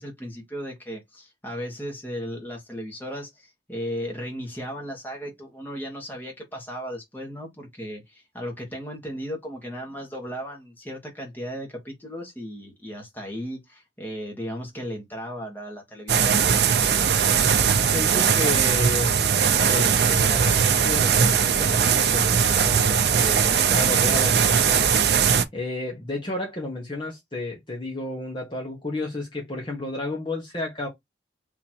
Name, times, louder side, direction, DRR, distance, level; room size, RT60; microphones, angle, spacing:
voice 1, 0.0-16.4, equal, 10° left, 1.4 m, -36 dB
sound 1, 16.1-25.4, right 7 dB, 60° right, 0.5 m, -20 dB
voice 2, 17.9-19.2 19.7-25.2 25.5-30.9, left 2 dB, 25° left, 1.1 m, -32 dB
3.9 x 2.9 x 4.5 m
head